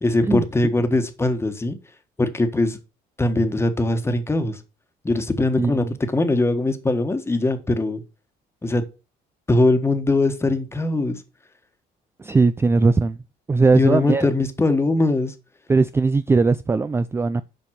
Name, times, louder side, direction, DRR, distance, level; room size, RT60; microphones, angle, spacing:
voice 1, 0.0-1.8 2.2-2.8 3.2-4.6 5.0-5.8 6.1-8.0 8.6-8.8 9.5-11.2 13.7-15.3, left 2 dB, 15° left, 1.4 m, -21 dB
voice 2, 5.6-5.9 12.2-13.2 13.5-14.3 15.7-17.4, right 4 dB, 15° right, 0.4 m, -19 dB
7.6 x 5.2 x 6.5 m
cardioid pair, 110°, 17 cm